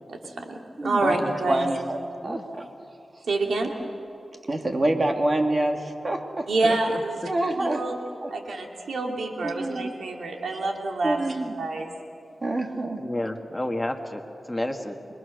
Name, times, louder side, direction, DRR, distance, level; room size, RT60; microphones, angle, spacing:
voice 1, 0.1-1.7 3.3-3.7 6.5-8.0 8.3-11.2 11.6-11.9, right 2 dB, 85° right, 2 dB, 2.6 m, -27 dB
voice 2, 0.8-1.2 1.5-2.0 2.2-2.7 4.5-6.5 7.3-7.8 8.2-8.3 9.4-9.9 11.0-11.5 12.4-13.0, right 1 dB, 45° right, 4 dB, 2.7 m, -26 dB
voice 3, 6.6-7.0 13.0-15.0, left 1 dB, 15° left, 5 dB, 1.9 m, -31 dB
26.5 x 22.5 x 6.6 m, 2.8 s
cardioid pair, 60°, 0 cm